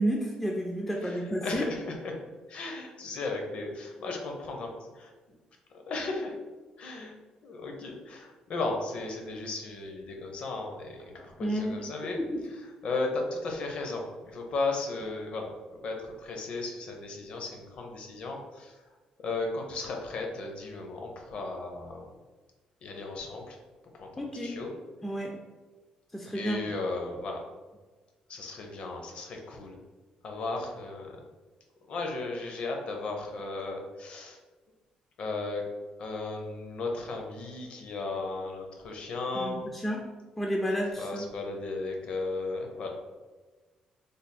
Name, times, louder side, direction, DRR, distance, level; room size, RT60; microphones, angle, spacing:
voice 1, 0.0-1.7 11.4-12.4 24.2-24.6 25.0-25.3 26.1-26.6 39.4-40.0 40.4-41.3, equal, 10° left, 0 dB, 0.4 m, -31 dB
voice 2, 1.0-2.1 2.5-5.1 5.7-6.4 6.8-7.1 7.4-12.2 12.8-15.5 15.8-18.8 19.2-22.1 22.8-23.6 23.9-24.7 26.3-27.4 28.3-29.8 30.2-31.1 31.9-34.4 35.2-35.6 36.0-39.6 41.0-42.9, left 3 dB, 55° left, 2 dB, 0.7 m, -35 dB
3.4 x 2.1 x 4.1 m, 1.3 s
cardioid pair, 125°, 2 cm